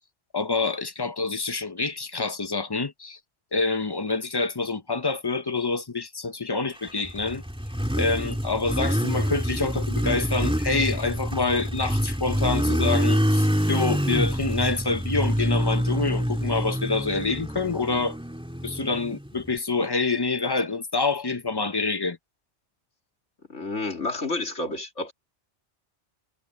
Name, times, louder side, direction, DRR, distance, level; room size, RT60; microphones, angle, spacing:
voice 1, 0.3-3.2 3.5-7.4 7.9-18.2 18.6-22.2, left 3 dB, 25° left, 0.8 m, -27 dB
Motorcycle, 6.9-19.5, equal, 5° right, 2.8 m, -26 dB
voice 2, 23.5-25.1, left 2 dB, 90° left, 3.4 m, -30 dB
omnidirectional pair, 1.2 m